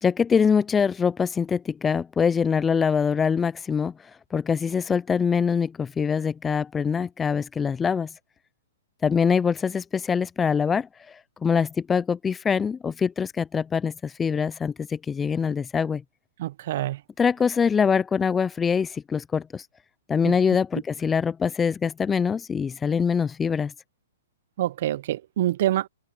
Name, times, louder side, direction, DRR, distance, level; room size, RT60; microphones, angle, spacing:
voice 1, 0.0-3.9 4.3-8.1 9.0-16.0 17.2-19.7 20.1-23.7, left 6 dB, 15° left, 0.4 m, -24 dB
voice 2, 16.4-17.0 20.2-20.3 24.6-25.9, right 13 dB, 55° right, 1.1 m, -26 dB
hypercardioid pair, 120°, 0 cm